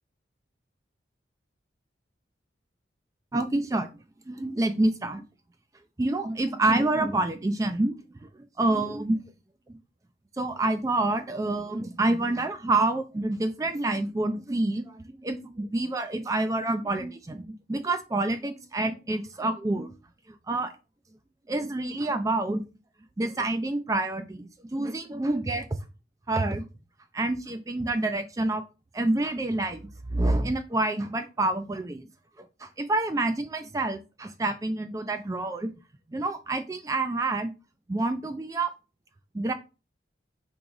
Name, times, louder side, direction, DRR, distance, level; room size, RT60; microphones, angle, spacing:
voice 1, 3.3-3.9 4.3-5.2 6.0-8.0 8.6-9.2 9.7-9.8 10.4-17.4 17.7-19.9 20.5-20.7 21.5-22.6 23.2-25.7 26.3-26.7 27.1-28.6 28.9-32.1 32.6-35.7 36.1-37.5 37.9-38.7 39.3-39.5, right 2 dB, 20° right, 8 dB, 0.3 m, -27 dB
3.8 x 3.0 x 4.8 m, 0.30 s
head